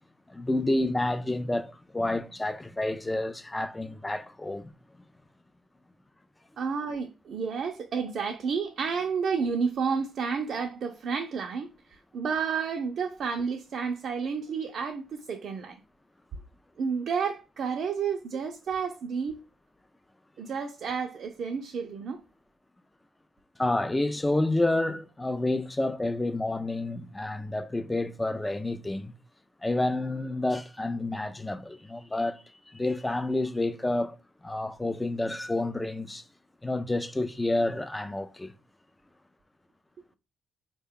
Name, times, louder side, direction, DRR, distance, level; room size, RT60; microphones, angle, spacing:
voice 1, 0.3-4.7 23.6-29.1 29.6-34.2 34.4-36.2 36.6-38.5, left 2 dB, 15° left, 0.4 m, -29 dB
voice 2, 6.6-11.7 12.1-15.8 16.8-19.4 20.4-22.2, right 6 dB, 60° right, 0.5 m, -31 dB
3.8 x 2.2 x 3.5 m
cardioid pair, 90°, 0 cm